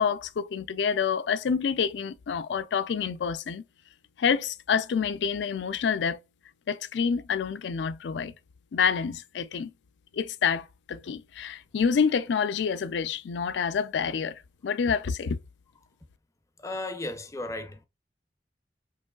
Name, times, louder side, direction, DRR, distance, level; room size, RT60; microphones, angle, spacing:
voice 1, 0.0-3.6 4.2-6.2 6.7-8.3 8.7-9.7 10.1-15.4, left 6 dB, 75° left, 0.4 m, -27 dB
voice 2, 16.6-17.8, left 2 dB, 20° left, 0.5 m, -35 dB
4.5 x 3.0 x 2.2 m
head